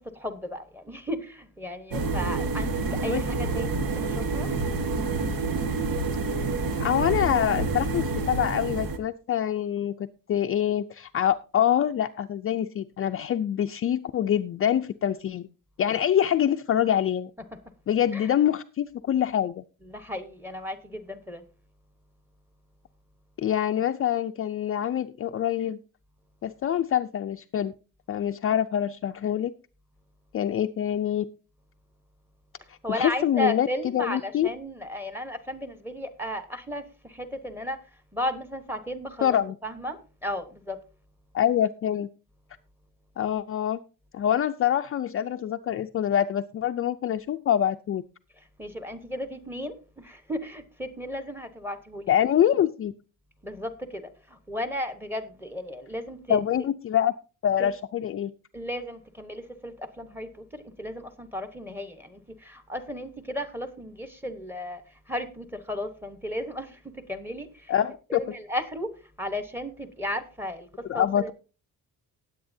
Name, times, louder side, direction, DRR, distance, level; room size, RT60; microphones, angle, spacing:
voice 1, 0.2-2.7 3.0-4.5 19.9-21.4 32.8-34.2 34.4-36.8 37.2-37.8 38.1-39.4 39.6-40.0 40.2-40.8 48.6-49.8 50.0-52.1 53.4-54.0 54.5-56.4 58.5-62.2 62.4-64.8 65.1-66.7 67.1-67.5 68.1-68.9 69.2-70.7 70.9-71.3, left 1 dB, 5° right, 1.0 m, -34 dB
sound 1, 1.9-9.0, right 3 dB, 75° right, 1.6 m, -28 dB
voice 2, 6.8-15.5 15.8-17.3 17.9-19.6 23.4-25.8 26.4-27.7 28.1-29.5 30.3-31.3 32.7-34.5 39.2-39.6 41.3-42.1 43.2-43.8 44.1-48.0 52.1-52.9 56.3-57.1 57.4-58.3 67.7-68.2 70.9-71.3, left 10 dB, 40° left, 0.4 m, -25 dB
19.0 x 8.1 x 2.7 m
wide cardioid pair, 180°, 35 cm